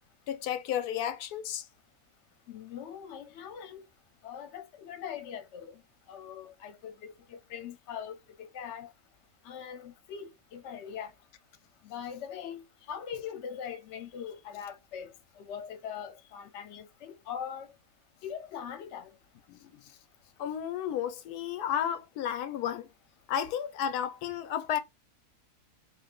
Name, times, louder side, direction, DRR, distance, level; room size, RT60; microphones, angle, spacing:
voice 1, 0.3-1.6 19.5-19.8 20.4-22.9 23.3-24.8, left 9 dB, 90° left, 1.1 m, -32 dB
voice 2, 2.5-3.8 4.2-5.8 6.1-8.9 9.4-11.1 11.8-12.6 12.9-15.1 15.4-17.7 18.2-19.1, left 8 dB, 60° left, 0.9 m, -41 dB
3.1 x 2.5 x 3.5 m
omnidirectional pair, 1.6 m